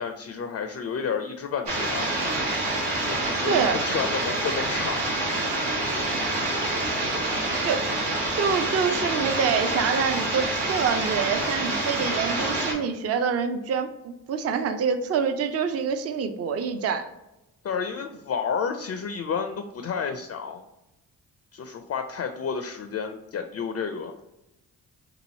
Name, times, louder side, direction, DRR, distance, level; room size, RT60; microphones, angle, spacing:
voice 1, 0.0-2.1 3.0-5.0 5.3-5.5 17.6-20.6 21.5-24.1, left 6 dB, 35° left, 7 dB, 0.4 m, -31 dB
sound 1, 1.7-12.7, right 2 dB, 75° right, 0.9 m, -27 dB
voice 2, 8.4-17.1, right 6 dB, 35° right, 8 dB, 0.4 m, -26 dB
3.0 x 2.5 x 2.7 m, 0.94 s
supercardioid pair, 40°, 43 cm